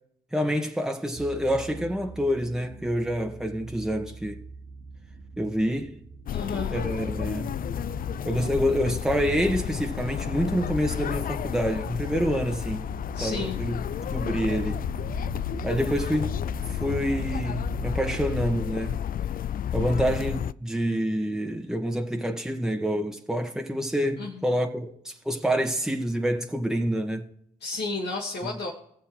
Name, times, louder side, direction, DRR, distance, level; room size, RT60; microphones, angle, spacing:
voice 1, 0.3-4.4 5.4-6.0 6.7-7.5 8.2-12.8 13.2-13.8 14.1-14.8 15.6-16.4 16.7-19.0 19.7-27.2 28.4-28.6, equal, 5° right, 1.8 m, -27 dB
sound 1, 1.2-18.5, right 5 dB, 55° right, 1.3 m, -42 dB
voice 2, 6.3-6.7 13.1-13.6 24.2-24.4 27.6-28.7, left 3 dB, 70° left, 2.0 m, -32 dB
sound 2, 6.3-20.5, left 10 dB, 50° left, 0.4 m, -31 dB
19.0 x 7.2 x 3.2 m
supercardioid pair, 45°, 18 cm